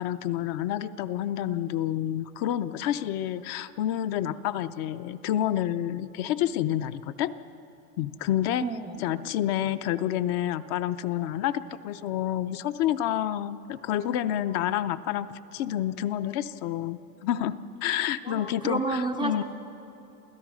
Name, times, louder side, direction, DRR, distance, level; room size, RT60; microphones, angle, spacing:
voice 1, 0.0-7.4 8.0-8.7 9.0-15.3 15.5-17.5 17.8-19.4, left 11 dB, 50° left, 12 dB, 0.7 m, -29 dB
voice 2, 8.6-9.0 18.3-19.4, right 3 dB, 10° right, 2 dB, 0.4 m, -30 dB
28.5 x 16.0 x 6.2 m, 2.8 s
supercardioid pair, 140°, 48 cm